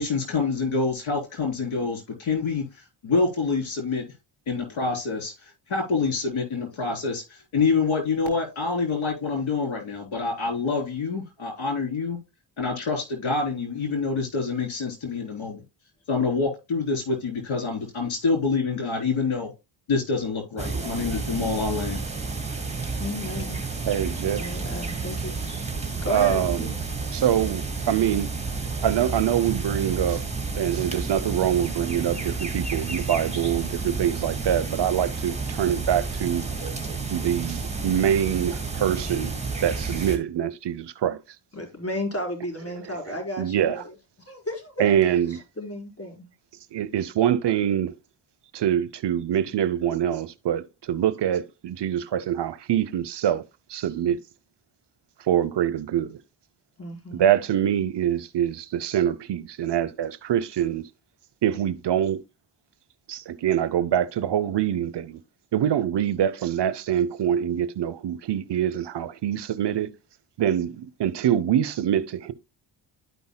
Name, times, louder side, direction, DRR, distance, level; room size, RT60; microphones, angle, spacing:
voice 1, 0.0-4.1 4.5-12.2 12.6-15.6 16.1-19.5 19.9-22.0, left 4 dB, 70° left, 3.7 m, -26 dB
sound 1, 20.6-40.2, right 4 dB, 15° right, 2.2 m, -31 dB
voice 2, 22.9-23.6 24.3-25.5 26.0-26.8 27.0-27.2 41.5-43.8 44.3-44.9 45.6-46.3 56.8-57.2, left 1 dB, 30° left, 4.2 m, -33 dB
voice 3, 23.9-24.5 26.1-26.7 27.1-28.3 28.8-30.2 30.5-36.5 37.1-41.2 42.8-43.0 43.4-43.8 44.8-45.4 46.7-47.9 48.5-53.4 53.7-54.2 55.2-56.2 57.1-60.8 61.4-62.2 63.1-65.2 65.5-69.9 70.4-72.3, right 10 dB, 60° right, 0.8 m, -24 dB
12.5 x 5.4 x 2.2 m
cardioid pair, 65°, 48 cm